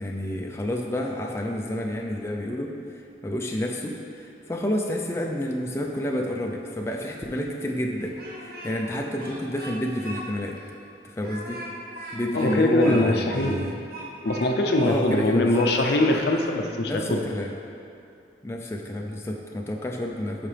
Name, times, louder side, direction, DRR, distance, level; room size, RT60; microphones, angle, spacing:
voice 1, 0.0-10.6 11.0-11.6 12.1-13.8 14.8-15.7 16.8-17.5 18.4-20.5, left 1 dB, 15° left, 0 dB, 0.5 m, -29 dB
Speech, 8.0-8.9 9.2-10.2 10.6-10.7 11.2-15.3 15.5-16.5, right 1 dB, 55° right, 1.3 m, -39 dB
voice 2, 12.3-13.7 14.2-17.2, left 2 dB, 60° left, 3 dB, 0.6 m, -22 dB
11.0 x 5.0 x 3.3 m, 2.5 s
head